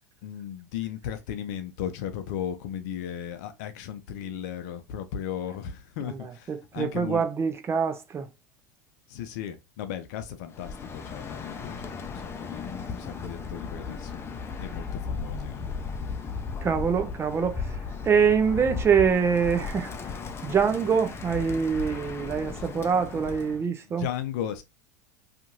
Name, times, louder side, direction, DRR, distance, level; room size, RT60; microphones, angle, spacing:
voice 1, 0.2-7.2 9.1-14.2 14.6-15.7 22.5-22.6 23.9-24.6, left 9 dB, 70° left, 0.6 m, -36 dB
voice 2, 6.0-8.3 16.6-17.6 18.0-19.9 20.4-24.1, right 6 dB, 25° right, 0.6 m, -25 dB
Bird, 10.5-23.6, left 5 dB, 25° left, 0.5 m, -36 dB
2.9 x 2.5 x 2.6 m
hypercardioid pair, 95°, 10 cm